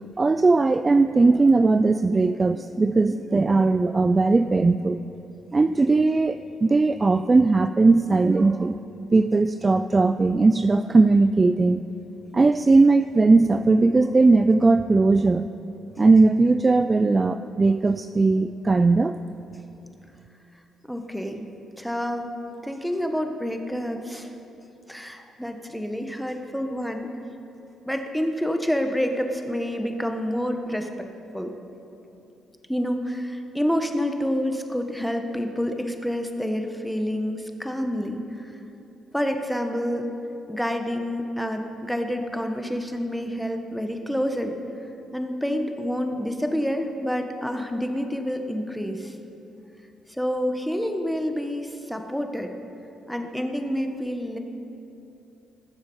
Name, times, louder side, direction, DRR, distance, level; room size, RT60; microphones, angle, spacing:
voice 1, 0.2-5.0 5.5-8.8 9.1-11.8 12.3-15.5 16.0-19.2, right 3 dB, 25° right, 10 dB, 0.3 m, -19 dB
voice 2, 20.9-21.5 21.8-22.3 22.6-24.3 24.9-27.1 27.8-31.1 31.3-31.6 32.7-38.5 39.1-40.1 40.5-44.6 45.1-49.1 50.2-52.5 53.1-54.4, equal, ahead, 5 dB, 1.1 m, -28 dB
19.5 x 7.2 x 5.5 m, 2.9 s
cardioid pair, 90°, 0 cm